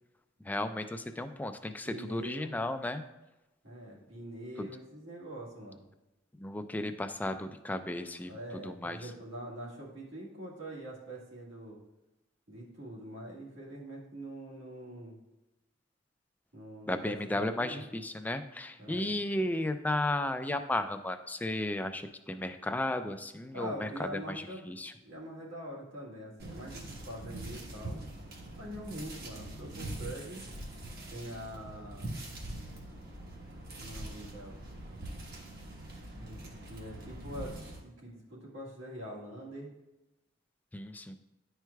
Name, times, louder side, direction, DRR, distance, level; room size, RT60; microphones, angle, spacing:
voice 1, 0.4-3.0 4.6-4.7 6.4-9.0 16.9-24.9 40.7-41.2, left 1 dB, 10° left, 8 dB, 0.3 m, -34 dB
voice 2, 1.8-2.6 3.6-5.9 8.3-11.8 12.5-15.2 16.5-17.9 18.8-19.1 23.5-24.7 25.0-28.1 28.6-30.4 31.1-32.1 33.7-34.6 36.2-39.7, right 1 dB, 80° right, -4 dB, 1.7 m, -44 dB
sound 1, 26.4-37.8, right 1 dB, 55° right, 1.2 m, -43 dB
10.5 x 4.5 x 2.3 m, 0.97 s
head